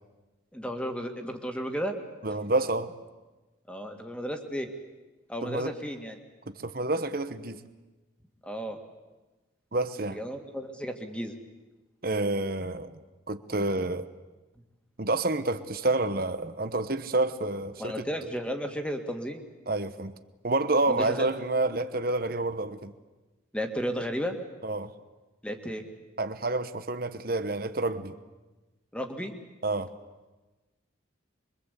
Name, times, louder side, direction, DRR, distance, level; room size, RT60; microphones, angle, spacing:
voice 1, 0.5-1.9 3.7-4.7 5.3-6.2 8.4-8.8 10.1-11.3 17.8-19.4 20.9-21.3 23.5-24.4 25.4-25.8 28.9-29.3, equal, 5° left, 2.2 m, -33 dB
voice 2, 2.2-2.9 5.4-5.7 6.5-7.6 9.7-10.2 12.0-13.0 13.3-14.1 15.0-18.0 19.7-20.1 20.4-22.9 24.6-24.9 26.2-28.1 29.6-29.9, right 2 dB, 50° right, 1.2 m, -28 dB
25.5 x 23.5 x 8.4 m
head